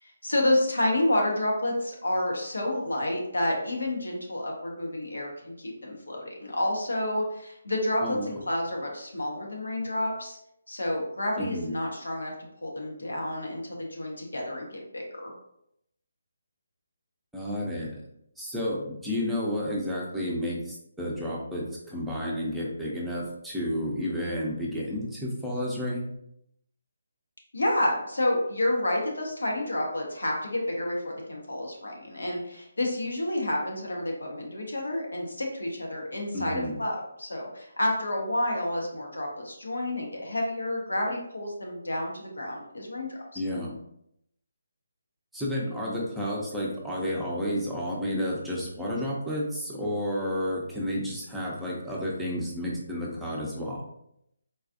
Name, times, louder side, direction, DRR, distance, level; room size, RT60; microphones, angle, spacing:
voice 1, 0.0-10.4 10.7-12.3 12.6-15.3 27.5-43.4, left 1 dB, 80° left, -1 dB, 1.0 m, -29 dB
voice 2, 8.0-8.3 11.4-11.7 17.3-18.0 18.4-26.1 36.3-36.8 43.3-43.7 45.3-53.8, equal, ahead, -6 dB, 0.7 m, -31 dB
4.0 x 2.4 x 2.5 m, 0.77 s
figure-of-eight pair, 150°, 0 cm